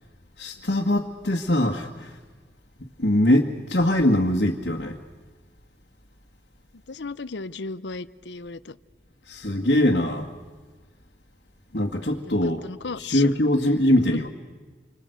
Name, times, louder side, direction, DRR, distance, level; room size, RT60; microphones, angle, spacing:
voice 1, 0.4-2.2 3.0-5.0 9.3-10.3 11.7-12.7 13.0-14.3, left 1 dB, 65° left, -1 dB, 1.9 m, -22 dB
voice 2, 6.7-8.8 11.7-12.3 12.6-13.3 14.1-14.2, left 4 dB, 80° left, 16 dB, 0.8 m, -35 dB
27.5 x 25.5 x 8.0 m, 1.3 s
head